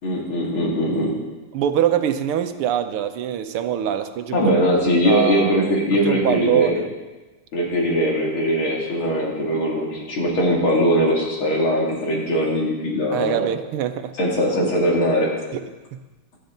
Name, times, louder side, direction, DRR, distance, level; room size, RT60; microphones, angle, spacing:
voice 1, 0.0-1.1 4.3-6.8 7.5-13.4 14.2-15.3, equal, 65° left, -2 dB, 3.5 m, -21 dB
voice 2, 1.5-4.5 5.0-6.9 13.1-14.1, right 10 dB, 80° right, 9 dB, 1.7 m, -23 dB
17.5 x 12.0 x 3.9 m, 1.2 s
omnidirectional pair, 2.4 m